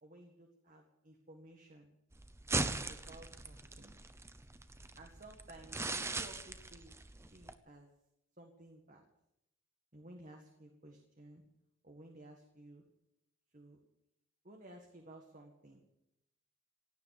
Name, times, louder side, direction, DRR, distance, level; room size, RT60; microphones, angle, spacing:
voice 1, 0.0-1.9 2.6-4.0 5.0-6.9 7.3-7.9 8.4-9.0 9.9-11.4 11.8-12.8 13.5-13.8 14.4-15.9, right 1 dB, 40° right, 2 dB, 1.8 m, -56 dB
sound 1, 2.1-7.5, right 3 dB, 15° right, 0.7 m, -40 dB
16.5 x 10.0 x 8.4 m, 0.85 s
head